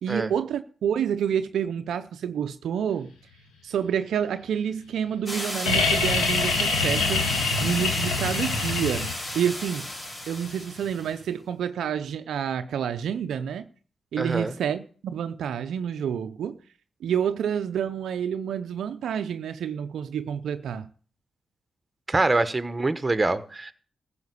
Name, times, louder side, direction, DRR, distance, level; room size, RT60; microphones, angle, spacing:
voice 1, 0.0-3.1 3.6-9.9 10.3-13.6 14.1-16.6 17.0-20.9, right 8 dB, 75° right, 0.5 m, -28 dB
sound 1, 5.3-11.1, left 1 dB, 35° left, 4.4 m, -33 dB
sound 2, 5.7-9.4 11.1-11.2, left 4 dB, 85° left, 1.8 m, -25 dB
voice 2, 14.2-14.5 22.1-23.7, right 2 dB, 25° right, 1.2 m, -25 dB
15.0 x 5.0 x 8.3 m
hypercardioid pair, 40°, 0 cm